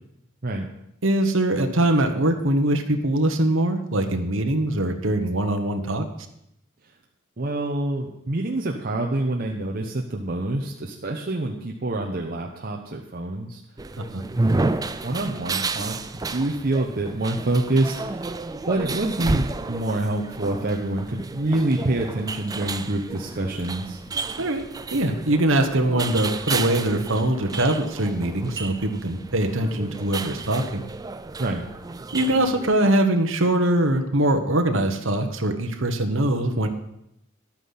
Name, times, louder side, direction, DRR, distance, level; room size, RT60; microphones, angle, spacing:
voice 1, 1.0-6.0 14.0-14.2 24.4-24.7 24.9-30.8 32.1-36.7, right 1 dB, 60° right, 5 dB, 1.3 m, -22 dB
voice 2, 7.4-13.6 15.0-18.3 18.7-24.0 31.4-31.7, right 2 dB, 45° right, 0 dB, 0.9 m, -26 dB
sound 1, 13.8-32.8, right 3 dB, 15° right, 0.4 m, -31 dB
11.5 x 9.1 x 5.8 m, 0.79 s
head